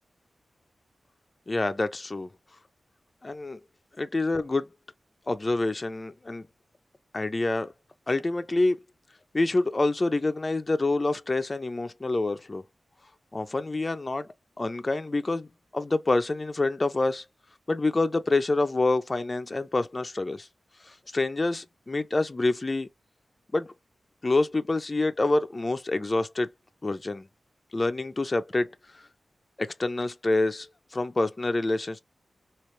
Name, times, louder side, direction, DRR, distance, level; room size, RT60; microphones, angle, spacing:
voice 1, 1.5-2.3 3.2-3.6 4.0-4.7 5.3-6.5 7.1-7.7 8.1-8.8 9.3-12.6 13.3-14.3 14.6-17.2 17.7-20.5 20.9-22.9 23.5-23.7 24.2-26.5 26.8-27.3 27.7-28.7 29.6-32.0, left 2 dB, 30° left, 0.4 m, -27 dB
3.1 x 2.8 x 3.1 m
wide cardioid pair, 115°, 0 cm